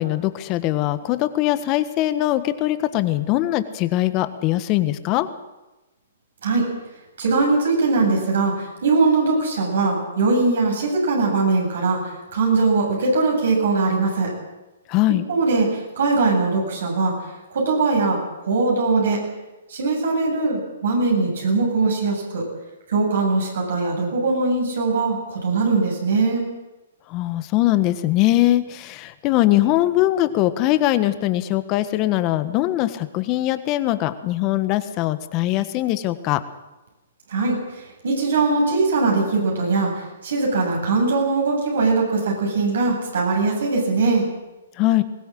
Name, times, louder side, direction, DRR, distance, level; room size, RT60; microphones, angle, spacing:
voice 1, 0.0-5.3 14.9-15.3 27.1-36.4 44.8-45.0, left 15 dB, 30° left, 11 dB, 1.4 m, -21 dB
voice 2, 7.2-14.3 15.3-17.2 17.5-19.2 19.7-22.4 22.9-26.5 37.3-44.3, right 3 dB, 70° right, -1 dB, 8.0 m, -21 dB
21.0 x 17.5 x 7.7 m, 1.1 s
hypercardioid pair, 140°, 0 cm